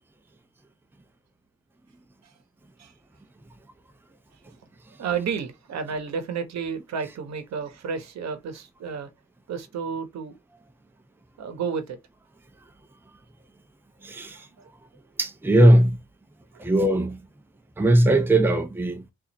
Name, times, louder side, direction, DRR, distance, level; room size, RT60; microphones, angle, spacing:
voice 1, 5.0-9.1 9.5-10.3 11.4-12.0 14.6-14.7 16.5-16.6, right 6 dB, 65° right, 1.0 m, -31 dB
voice 2, 14.0-14.5 15.2-16.0 16.6-17.3 17.8-19.0, right 1 dB, 5° right, 0.7 m, -19 dB
4.0 x 2.6 x 3.0 m
cardioid pair, 75°, 29 cm